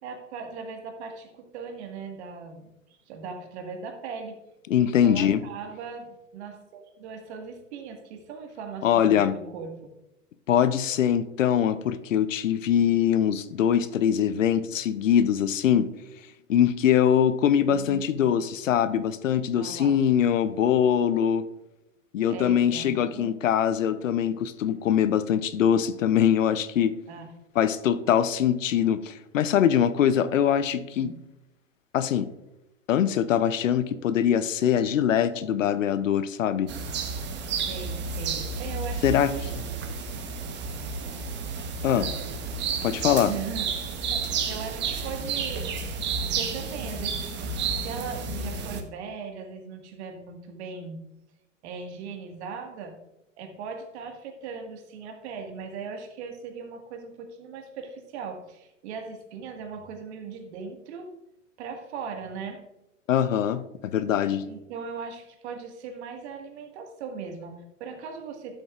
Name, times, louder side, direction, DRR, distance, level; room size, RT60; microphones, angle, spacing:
voice 1, 0.0-2.7 3.1-4.4 4.8-9.9 17.6-18.2 19.5-20.0 22.3-23.4 27.1-27.3 31.0-31.2 37.7-39.5 41.8-42.1 43.3-45.9 46.2-47.5 47.8-51.0 51.6-53.0 53.4-61.1 61.6-62.6 64.4-68.6, right 5 dB, 60° right, 5 dB, 1.8 m, -39 dB
voice 2, 4.7-5.4 8.8-9.3 10.5-15.9 16.5-21.4 22.1-26.9 27.6-31.1 31.9-32.3 32.9-36.7 39.0-39.3 41.8-42.1 42.8-43.3 63.1-63.6 63.9-64.4, left 9 dB, 80° left, 13 dB, 0.8 m, -23 dB
sound 1, 36.7-48.8, right 5 dB, 30° right, 1.1 m, -31 dB
12.0 x 7.8 x 2.5 m, 0.93 s
hypercardioid pair, 115°, 38 cm